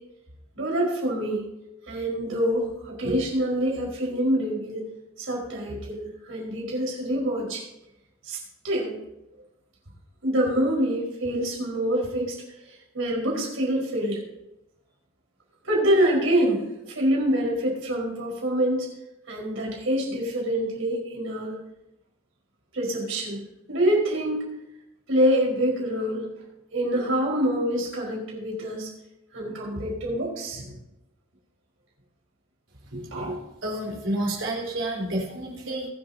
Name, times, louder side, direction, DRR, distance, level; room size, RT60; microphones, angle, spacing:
voice 1, 0.5-1.4 1.9-4.8 5.2-7.6 8.2-8.4 8.6-8.9 10.2-12.4 12.9-14.2 15.6-18.9 19.3-21.5 22.7-23.4 23.7-24.5 25.1-26.3 26.7-28.9 29.3-30.8 32.9-33.4, equal, 80° right, -2 dB, 4.7 m, -26 dB
voice 2, 33.6-35.9, right 1 dB, 65° right, -2 dB, 4.0 m, -29 dB
23.0 x 7.8 x 2.8 m, 0.89 s
head